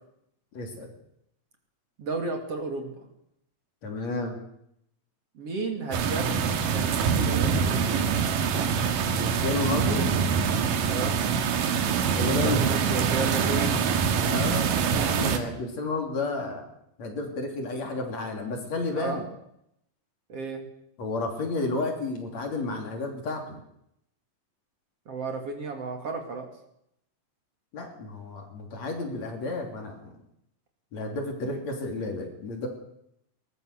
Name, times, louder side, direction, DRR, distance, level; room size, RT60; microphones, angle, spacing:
voice 1, 0.5-0.9 3.8-4.4 9.2-10.1 12.1-12.6 14.3-16.6 17.0-19.2 21.0-23.6 27.7-30.1 30.9-32.7, left 3 dB, 50° left, 3 dB, 4.2 m, -31 dB
voice 2, 2.0-3.1 5.3-6.4 6.7-8.0 10.9-11.1 12.4-13.9 19.0-19.2 20.3-20.6 25.1-26.5, right 3 dB, 45° right, 4 dB, 3.3 m, -33 dB
sound 1, 5.9-15.4, right 6 dB, 75° right, 3.2 m, -25 dB
22.0 x 19.5 x 6.7 m, 0.77 s
omnidirectional pair, 4.0 m